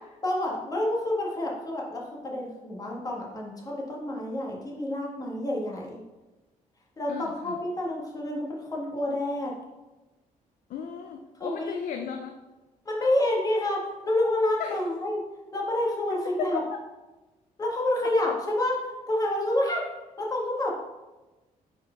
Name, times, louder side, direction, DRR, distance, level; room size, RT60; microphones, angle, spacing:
voice 1, 0.2-5.9 7.0-9.6 11.4-11.8 12.8-15.2 15.5-16.6 17.6-18.8 19.1-19.8 20.2-20.7, left 1 dB, 25° left, -2 dB, 1.5 m, -28 dB
voice 2, 7.1-7.5 10.7-12.4 14.6-14.8 16.4-16.8, left 7 dB, 70° left, 5 dB, 0.5 m, -35 dB
4.7 x 4.6 x 5.0 m, 1.1 s
cardioid pair, 135°, 14 cm